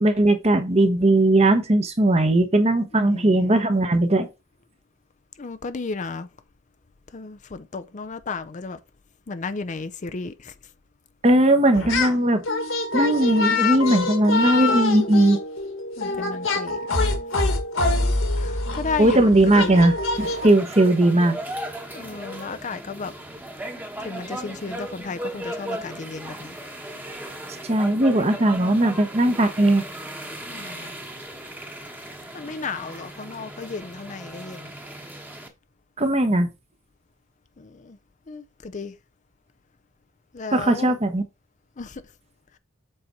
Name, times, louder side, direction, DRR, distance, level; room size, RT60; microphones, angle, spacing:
voice 1, 0.0-4.3 11.2-12.4 12.9-15.4 19.0-21.4 27.6-29.8 36.0-36.5 40.5-41.2, right 1 dB, 30° right, 1.1 m, -18 dB
voice 2, 3.0-3.6 5.4-6.3 7.1-8.8 9.3-10.5 14.3-14.9 16.0-16.8 18.4-19.9 21.9-23.1 24.0-26.6 30.4-30.9 32.3-34.7 37.6-38.0 38.3-38.9 40.3-40.9 41.8-42.0, left 4 dB, 35° left, 0.5 m, -34 dB
sound 1, 11.7-12.2 12.4-20.5, left 2 dB, 70° left, 1.9 m, -25 dB
sound 2, 20.2-35.5, right 1 dB, 10° right, 1.2 m, -36 dB
7.7 x 4.2 x 4.5 m
head